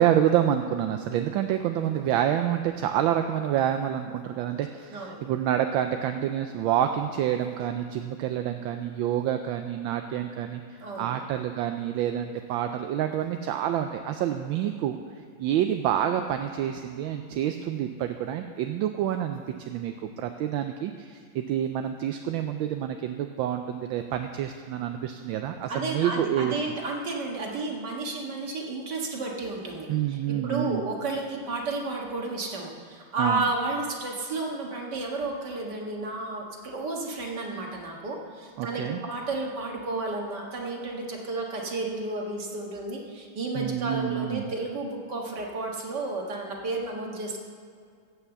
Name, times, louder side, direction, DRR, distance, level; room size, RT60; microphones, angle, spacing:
voice 1, 0.0-10.6 11.0-15.0 15.4-26.6 29.9-30.9 33.2-33.5 38.6-39.0 43.5-44.5, right 10 dB, 75° right, 6 dB, 1.3 m, -28 dB
voice 2, 4.9-5.2 10.8-11.2 25.7-30.2 30.4-47.4, right 2 dB, 55° right, 0 dB, 2.1 m, -32 dB
16.0 x 5.8 x 7.1 m, 2.2 s
omnidirectional pair, 2.3 m